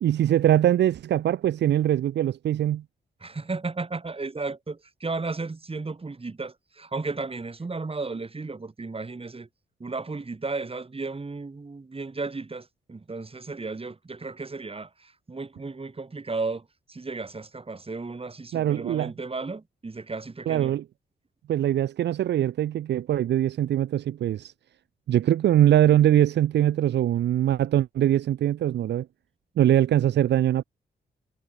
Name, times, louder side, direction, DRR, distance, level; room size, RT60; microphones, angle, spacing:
voice 1, 0.0-2.8 18.5-19.1 20.5-20.8 21.5-24.5 25.1-29.1 29.6-30.7, right 11 dB, 70° right, 0.5 m, -22 dB
voice 2, 3.2-9.5 9.8-20.7, right 3 dB, 30° right, 2.3 m, -34 dB
cardioid pair, 55°, 18 cm